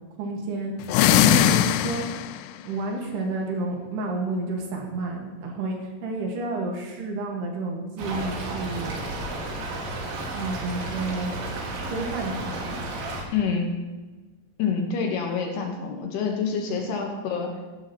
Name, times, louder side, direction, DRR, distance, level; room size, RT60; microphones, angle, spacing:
voice 1, 0.2-2.1 2.6-9.0 10.3-11.3 11.9-12.7 16.7-16.9, right 3 dB, 65° right, 1 dB, 3.5 m, -30 dB
sound 1, 0.8-2.5, left 11 dB, 90° left, 2.3 m, -20 dB
Stream / Trickle dribble, 8.0-13.2, right 2 dB, 85° right, 4.2 m, -32 dB
voice 2, 13.3-13.9 14.6-17.6, left 5 dB, 70° left, 2 dB, 3.0 m, -27 dB
16.5 x 11.0 x 3.0 m, 1.3 s
omnidirectional pair, 5.3 m